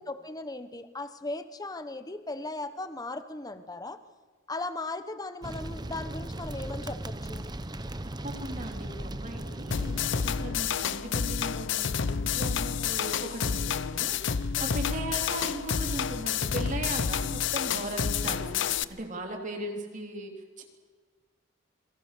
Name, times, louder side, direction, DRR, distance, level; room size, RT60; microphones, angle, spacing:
voice 1, 0.0-4.0 4.5-7.5 10.4-10.7 14.6-14.7, left 2 dB, 20° left, 10 dB, 1.0 m, -37 dB
sound 1, 5.4-10.7, right 1 dB, 20° right, 0.9 m, -38 dB
voice 2, 8.0-20.6, right 1 dB, 40° right, 2 dB, 3.1 m, -38 dB
sound 2, 9.7-18.8, left 7 dB, 60° left, 0.7 m, -29 dB
27.0 x 22.5 x 6.7 m, 1.5 s
head